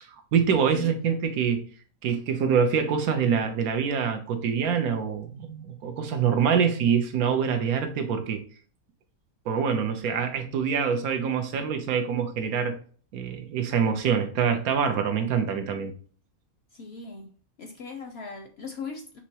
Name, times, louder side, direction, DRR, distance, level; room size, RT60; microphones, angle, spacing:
voice 1, 0.3-1.6 2.0-8.4 9.5-12.8 13.1-15.9, right 7 dB, 80° right, 1.2 m, -25 dB
voice 2, 16.7-17.3 17.6-19.2, left 4 dB, 60° left, 0.7 m, -39 dB
5.7 x 3.1 x 2.8 m
omnidirectional pair, 1.6 m